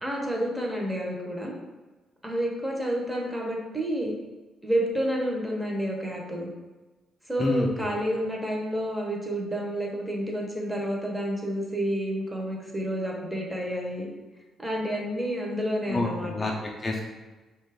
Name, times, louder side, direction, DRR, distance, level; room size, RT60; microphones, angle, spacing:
voice 1, 0.0-1.5 2.2-4.1 4.6-6.5 7.3-14.1 14.6-16.5, equal, 10° right, -1 dB, 0.7 m, -29 dB
voice 2, 7.4-7.9 15.9-17.0, left 2 dB, 30° left, -1 dB, 0.4 m, -28 dB
2.8 x 2.3 x 3.3 m, 1.2 s
cardioid pair, 90°, 0 cm